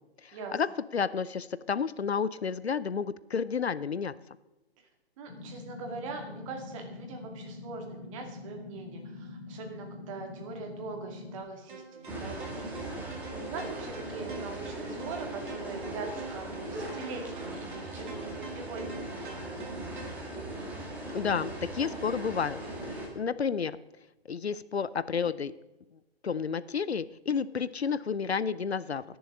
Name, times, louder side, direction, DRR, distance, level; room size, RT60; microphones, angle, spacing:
voice 1, 0.2-4.1 21.1-22.6 22.9-23.8 24.3-25.5 26.2-29.0, left 6 dB, 85° left, 17 dB, 0.6 m, -31 dB
voice 2, 5.2-20.3, right 4 dB, 30° right, 3 dB, 2.3 m, -42 dB
sound 1, 5.3-11.4, left 3 dB, 40° left, 2.4 m, -44 dB
sound 2, 11.7-20.0, right 4 dB, 50° right, 2.3 m, -46 dB
sound 3, 12.1-23.1, right 1 dB, 5° right, 1.9 m, -39 dB
20.5 x 7.0 x 3.7 m, 1.0 s
figure-of-eight pair, 135°, 32 cm